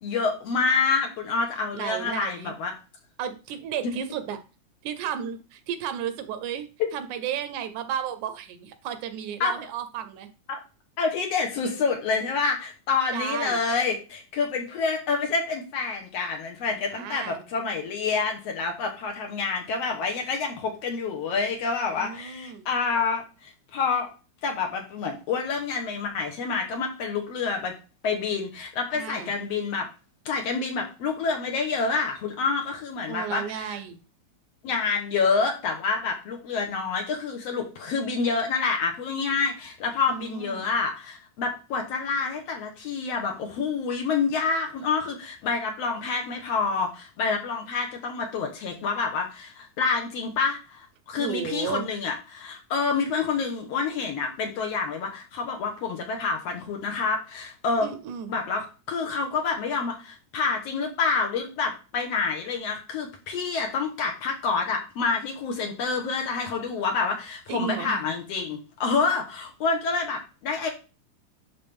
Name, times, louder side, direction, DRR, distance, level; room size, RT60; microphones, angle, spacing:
voice 1, 0.0-2.7 9.4-9.5 10.5-10.6 11.0-24.1 24.4-27.8 28.0-29.9 30.3-33.8 34.6-57.9 58.3-70.7, left 4 dB, 65° left, 2 dB, 2.1 m, -28 dB
voice 2, 1.7-2.5 3.2-4.4 4.8-6.7 6.9-10.3 13.1-13.6 16.9-17.5 21.9-22.7 28.9-29.3 33.1-34.0 40.1-40.7 51.2-51.9 57.8-58.4 67.5-68.1, right 8 dB, 80° right, 10 dB, 2.2 m, -33 dB
11.0 x 3.7 x 3.5 m, 0.32 s
omnidirectional pair, 3.4 m